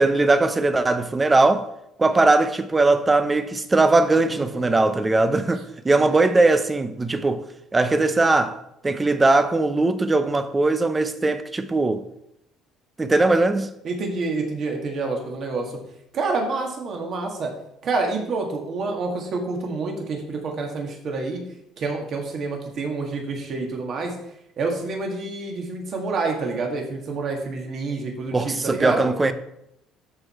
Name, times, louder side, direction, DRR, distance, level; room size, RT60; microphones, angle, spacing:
voice 1, 0.0-1.7 2.0-7.4 7.7-12.0 13.0-13.7 28.3-29.3, right 2 dB, 15° right, 0.6 m, -20 dB
voice 2, 4.3-4.7 5.9-6.1 13.8-15.8 16.1-17.5 17.8-21.4 21.8-24.1 24.6-29.1, right 3 dB, 40° right, 2.0 m, -28 dB
13.0 x 4.8 x 4.4 m
cardioid pair, 155°, 0 cm